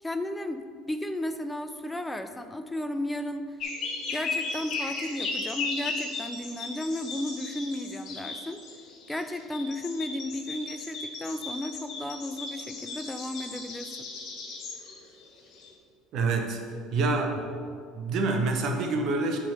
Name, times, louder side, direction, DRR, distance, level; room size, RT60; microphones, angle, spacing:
voice 1, 0.0-3.6 4.1-8.6 9.1-14.0, left 1 dB, 10° left, 8 dB, 0.4 m, -34 dB
sound 1, 3.6-15.7, left 3 dB, 55° left, 1.5 m, -36 dB
voice 2, 16.1-16.6 16.9-17.4 18.0-19.4, right 3 dB, 60° right, 3 dB, 0.9 m, -26 dB
7.3 x 3.7 x 5.7 m, 2.1 s
hypercardioid pair, 80°, 0 cm